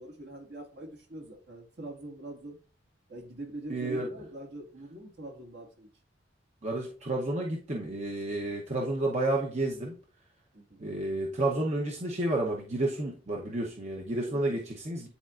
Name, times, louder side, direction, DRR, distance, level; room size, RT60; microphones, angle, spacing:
voice 1, 0.0-2.6 3.1-5.9 10.5-10.8 14.2-14.6, right 1 dB, 65° right, 1 dB, 1.9 m, -43 dB
voice 2, 3.7-4.1 6.6-9.9 10.8-15.1, right 2 dB, 40° right, -1 dB, 0.8 m, -31 dB
10.0 x 4.2 x 2.5 m, 0.38 s
head